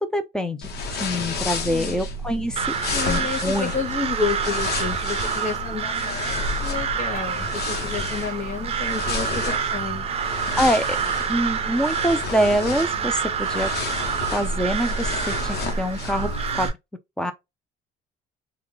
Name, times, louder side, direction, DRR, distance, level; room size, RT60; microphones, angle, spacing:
voice 1, 0.1-2.7 3.1-3.7 10.6-11.0 11.3-13.7 14.3-16.3 16.6-16.7 17.2-17.3, equal, 5° left, 0.7 m, -25 dB
sound 1, 0.6-16.7, left 2 dB, 75° left, 1.1 m, -31 dB
voice 2, 1.7-2.0 2.9-10.1, left 5 dB, 45° left, 1.7 m, -30 dB
Crow, 2.6-16.7, right 7 dB, 35° right, 0.7 m, -28 dB
3.6 x 2.5 x 3.3 m
cardioid pair, 110°, 17 cm